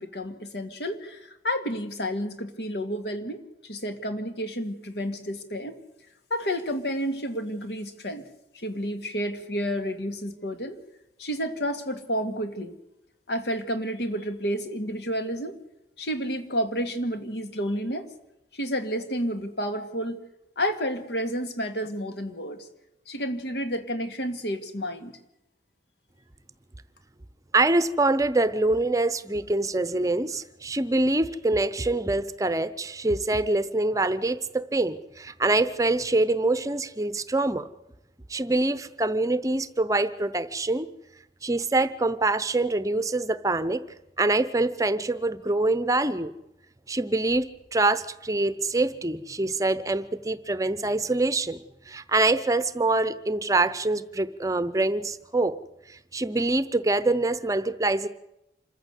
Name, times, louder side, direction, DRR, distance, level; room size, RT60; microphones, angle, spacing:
voice 1, 0.0-5.8 6.3-8.3 8.5-10.8 11.2-12.7 13.3-15.6 16.0-18.1 18.5-20.2 20.6-22.7 23.1-25.2, equal, 70° left, 8 dB, 2.2 m, -30 dB
voice 2, 27.5-37.7 38.3-40.9 41.4-43.8 44.2-46.3 46.9-51.6 51.9-55.6 55.9-58.1, right 2 dB, 20° right, 14 dB, 0.7 m, -25 dB
26.5 x 14.5 x 8.3 m, 0.88 s
head